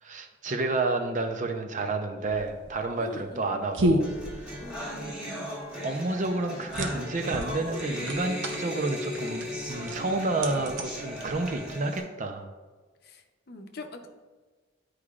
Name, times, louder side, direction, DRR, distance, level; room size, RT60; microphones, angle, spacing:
voice 1, 0.0-4.1 4.5-4.6 4.9-5.1 5.8-12.5, right 2 dB, 45° right, 5 dB, 0.6 m, -30 dB
sound 1, 2.3-11.8, right 1 dB, 85° right, 0.7 m, -33 dB
voice 2, 3.0-3.7 4.6-5.5 13.0-14.1, left 3 dB, 55° left, 5 dB, 0.7 m, -43 dB
sound 2, 4.0-12.0, left 1 dB, 5° right, 1.3 m, -37 dB
10.0 x 4.8 x 2.4 m, 1.3 s
head